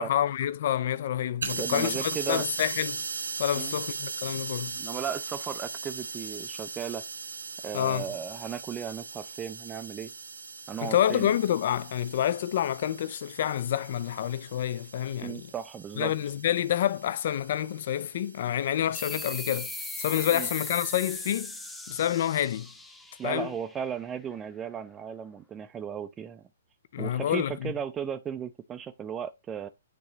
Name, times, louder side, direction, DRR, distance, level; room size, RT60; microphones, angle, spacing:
voice 1, 0.0-3.0 3.4-4.8 7.7-8.1 10.8-15.5 16.0-19.7 20.0-21.6 21.9-22.7 23.2-23.5 26.9-27.7, left 11 dB, 45° left, 0.5 m, -28 dB
sound 1, 1.4-20.8, right 4 dB, 65° right, 1.0 m, -39 dB
voice 2, 1.5-2.5 3.5-3.7 4.8-7.0 7.6-10.1 10.7-11.3 15.2-16.1 20.3-20.5 23.2-26.4 27.0-29.7, right 8 dB, 15° right, 0.5 m, -36 dB
sound 2, 18.9-24.1, left 2 dB, 5° left, 0.8 m, -38 dB
9.5 x 3.8 x 2.9 m
figure-of-eight pair, 120°, 0 cm